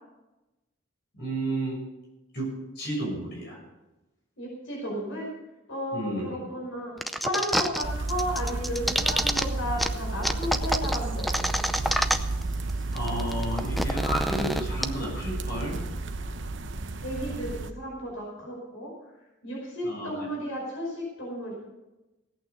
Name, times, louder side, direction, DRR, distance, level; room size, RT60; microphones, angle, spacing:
voice 1, 1.1-1.8 2.3-3.6 5.9-6.4 12.9-15.8 19.8-20.3, right 1 dB, 55° left, -2 dB, 6.8 m, -32 dB
voice 2, 4.4-5.3 5.7-6.9 7.2-11.4 17.0-18.9 19.4-21.5, equal, 85° left, -3 dB, 4.9 m, -33 dB
sound 1, 7.0-7.8 8.1-9.4 9.8-9.9 10.2-12.4 12.7-12.8 13.0-14.8, equal, ahead, 0.5 m, -26 dB
sound 2, 7.8-17.7, right 2 dB, 70° right, 0.9 m, -32 dB
17.0 x 8.8 x 6.7 m, 1.0 s
head